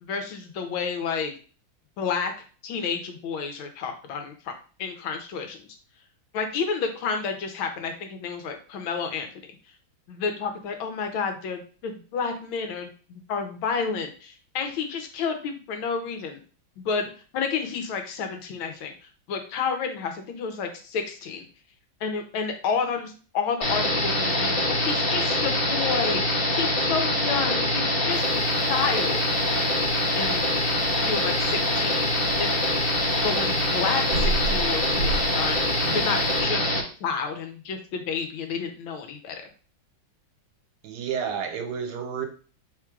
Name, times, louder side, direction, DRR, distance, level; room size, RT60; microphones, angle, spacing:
voice 1, 0.0-1.3 2.0-2.3 2.6-4.5 4.8-5.6 6.3-9.3 10.1-16.4 16.8-18.9 19.3-21.4 22.0-28.4 28.7-29.3 30.1-30.5 31.0-32.0 32.4-32.5 33.2-35.6 35.9-36.7 37.0-39.4, left 5 dB, 85° left, 5 dB, 1.6 m, -30 dB
sound 1, 23.6-36.8, left 1 dB, 35° left, 1.0 m, -24 dB
sound 2, 28.1-36.4, right 2 dB, 80° right, 2.0 m, -35 dB
voice 2, 40.8-42.3, right 7 dB, 65° right, 5 dB, 1.2 m, -30 dB
4.4 x 2.4 x 4.5 m, 0.38 s
omnidirectional pair, 2.2 m